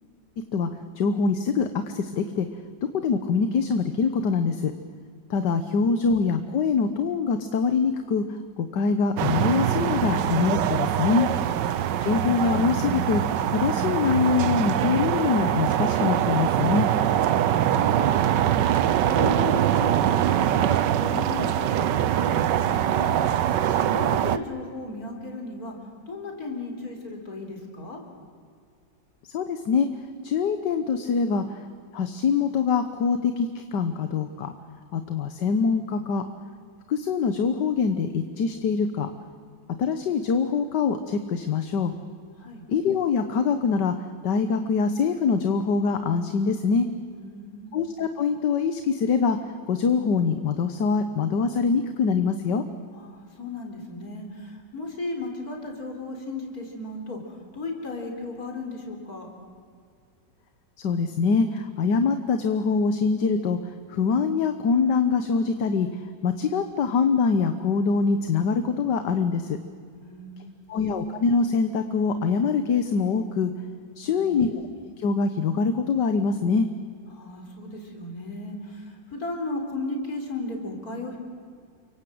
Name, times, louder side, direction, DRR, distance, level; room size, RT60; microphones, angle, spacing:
voice 1, 1.0-2.5 3.0-4.7 5.3-8.2 8.6-11.3 12.0-13.2 13.5-16.9 29.3-29.9 30.2-31.6 31.9-34.5 34.9-36.2 36.9-39.1 39.8-41.9 42.7-43.9 44.2-46.9 47.7-49.4 49.7-52.6 60.8-63.6 63.9-65.9 66.2-69.6 70.7-73.5 74.0-74.6 75.0-76.7, left 5 dB, 70° left, 9 dB, 1.7 m, -24 dB
sound 1, 9.2-24.4, right 10 dB, 75° right, 1.5 m, -23 dB
voice 2, 17.2-23.2 23.7-25.7 26.1-28.0 42.4-42.6 47.1-47.8 52.9-59.3 69.9-70.8 74.0-74.5 77.1-81.2, left 2 dB, 50° left, 2 dB, 4.9 m, -36 dB
29.5 x 25.0 x 7.9 m, 2.2 s
omnidirectional pair, 2.0 m